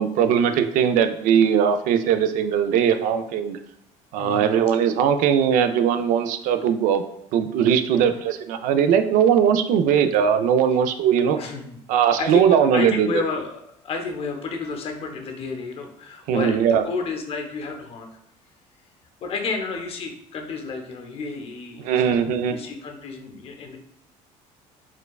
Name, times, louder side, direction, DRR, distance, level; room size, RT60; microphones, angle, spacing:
voice 1, 0.0-3.6 4.1-7.0 7.3-11.4 11.9-13.2 16.3-16.8 21.8-22.5, right 8 dB, 70° right, 9 dB, 0.4 m, -20 dB
voice 2, 4.1-4.5 7.9-8.2 11.4-11.8 12.2-16.6 16.8-18.1 19.2-23.8, left 4 dB, 45° left, 3 dB, 0.7 m, -31 dB
4.4 x 2.3 x 2.3 m, 0.77 s
cardioid pair, 115°, 14 cm